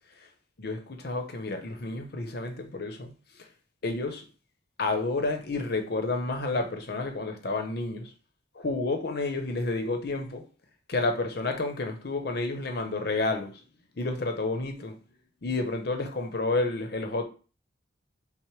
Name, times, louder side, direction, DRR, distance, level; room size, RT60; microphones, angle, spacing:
voice 1, 0.6-3.1 3.4-3.5 3.8-4.2 4.8-8.1 8.5-10.4 10.9-13.6 13.9-15.0 15.4-17.2, left 3 dB, 55° left, 0.7 m, -30 dB
5.9 x 2.1 x 3.2 m
head